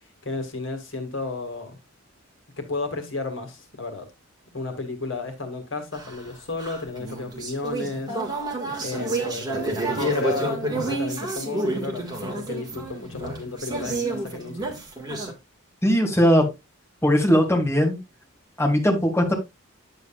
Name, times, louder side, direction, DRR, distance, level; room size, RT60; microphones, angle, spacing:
voice 1, 0.2-1.8 2.6-4.1 4.5-8.2 8.8-14.8, left 3 dB, 60° left, 2.0 m, -32 dB
sound 1, 5.9-15.3, right 2 dB, 20° right, 1.9 m, -29 dB
voice 2, 15.8-16.5 17.0-18.0 18.6-19.3, equal, 10° left, 2.4 m, -19 dB
9.8 x 8.2 x 2.4 m
head